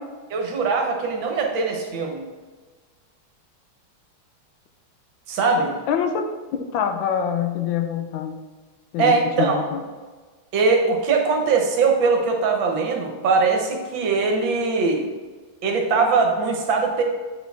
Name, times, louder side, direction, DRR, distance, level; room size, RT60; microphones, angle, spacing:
voice 1, 0.3-2.2 5.3-5.7 9.0-9.6 10.5-15.0 15.6-17.0, right 4 dB, 70° right, 2 dB, 1.6 m, -21 dB
voice 2, 5.6-8.4 8.9-9.8, left 7 dB, 75° left, 6 dB, 1.3 m, -25 dB
7.7 x 4.4 x 3.5 m, 1.4 s
omnidirectional pair, 2.3 m